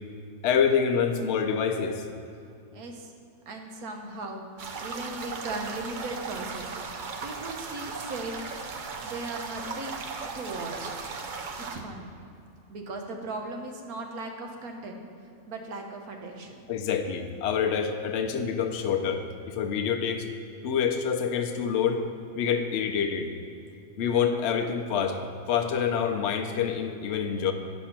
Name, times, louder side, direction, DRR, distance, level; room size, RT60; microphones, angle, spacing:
voice 1, 0.4-2.0 16.7-20.3 20.6-22.0 22.3-23.3 24.0-25.2 25.5-27.5, left 7 dB, 60° left, 5 dB, 0.8 m, -26 dB
voice 2, 2.7-3.1 3.5-4.5 4.8-6.7 7.2-8.4 9.0-10.0 10.3-11.0 11.5-12.1 12.7-15.0 15.5-16.7, right 2 dB, 80° right, 3 dB, 1.5 m, -37 dB
sound 1, 4.6-11.8, right 4 dB, 50° right, 0.6 m, -37 dB
9.0 x 6.3 x 5.8 m, 2.6 s
omnidirectional pair, 1.5 m